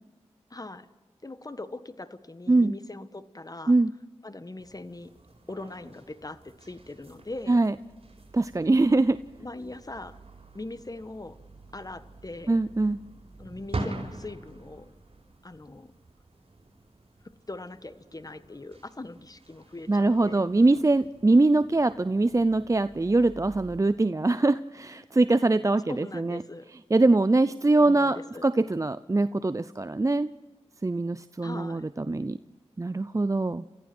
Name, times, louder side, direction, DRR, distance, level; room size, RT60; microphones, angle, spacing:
voice 1, 0.5-0.9 1.2-3.8 4.2-5.1 5.5-7.6 9.4-10.2 10.5-11.4 11.7-12.6 13.4-14.9 15.4-15.9 17.2-20.5 25.9-26.7 27.8-28.5 31.4-31.9, left 2 dB, 35° left, 12 dB, 1.5 m, -41 dB
sound 1, 4.6-23.8, right 2 dB, 60° right, 4.9 m, -45 dB
voice 2, 8.3-9.2 12.5-13.0 19.9-26.4 26.9-28.2 28.4-30.3 30.8-32.4 32.8-33.6, right 2 dB, 30° right, 14 dB, 0.6 m, -23 dB
29.5 x 14.5 x 6.2 m, 1.2 s
cardioid pair, 40°, 11 cm